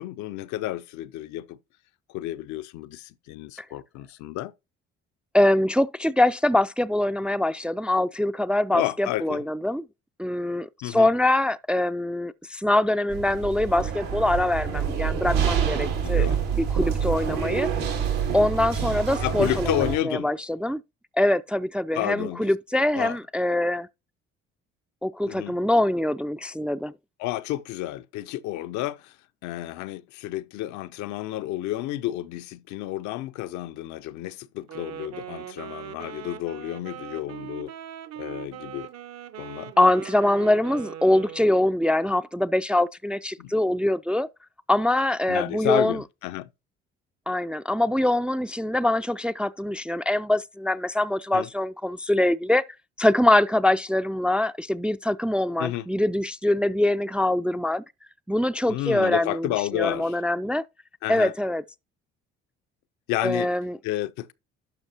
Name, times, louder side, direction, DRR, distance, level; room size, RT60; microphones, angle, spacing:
voice 1, 0.0-1.6 2.1-4.5 8.7-9.4 10.8-11.1 16.0-16.4 19.2-20.3 21.9-22.4 22.9-23.2 25.2-25.6 27.2-29.2 29.4-37.7 38.2-38.9 39.4-39.7 43.4-43.5 45.3-46.5 51.3-51.5 55.6-55.9 58.7-60.2 61.0-61.3 63.1-63.5 63.8-64.3, left 15 dB, 75° left, 0.6 m, -31 dB
voice 2, 5.3-9.8 10.2-16.3 16.6-17.7 18.3-20.8 21.2-23.9 25.0-26.9 39.8-44.3 44.7-46.0 47.3-52.6 53.0-57.8 58.3-60.6 61.1-61.6 63.2-63.8, left 1 dB, 5° right, 0.3 m, -23 dB
sound 1, 13.1-20.0, right 7 dB, 90° right, 2.2 m, -26 dB
Wind instrument woodwind instrument, 34.6-41.8, right 11 dB, 60° right, 0.9 m, -40 dB
12.0 x 5.3 x 2.8 m
hypercardioid pair, 60°, 29 cm